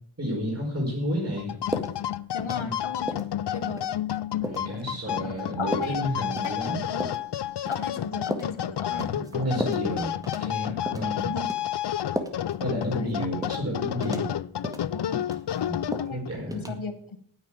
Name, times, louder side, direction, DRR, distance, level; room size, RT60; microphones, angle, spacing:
voice 1, 0.2-1.5 2.5-2.7 4.4-6.8 8.9-11.4 12.6-14.3 15.5-16.8, equal, 30° right, -2 dB, 4.7 m, -31 dB
sound 1, 1.4-16.4, left 11 dB, 60° left, 0.5 m, -31 dB
sound 2, 1.7-2.0 2.4-2.8 3.1-3.3 3.8-3.9 4.4-4.7 5.1-5.2 5.7-6.0 6.4-6.6 7.0-7.2 7.7-8.0 8.3-8.5 9.0-9.3 9.6-9.9 10.2-10.6 10.9-11.1 11.5-11.6 12.2-12.5 12.8-13.0 13.4-13.6 14.0-14.3 14.6-14.9 15.2-15.6 15.9-16.2 16.5-16.7, equal, 5° right, 1.9 m, -34 dB
voice 2, 2.3-3.9 5.2-5.9 6.4-7.1 7.7-9.5 10.8-11.0 11.2-11.6 12.9-13.2 14.9-15.3 15.9-16.2 16.5-17.2, left 5 dB, 80° left, 8 dB, 1.5 m, -36 dB
9.7 x 8.6 x 8.8 m, 0.63 s
cardioid pair, 45°, 47 cm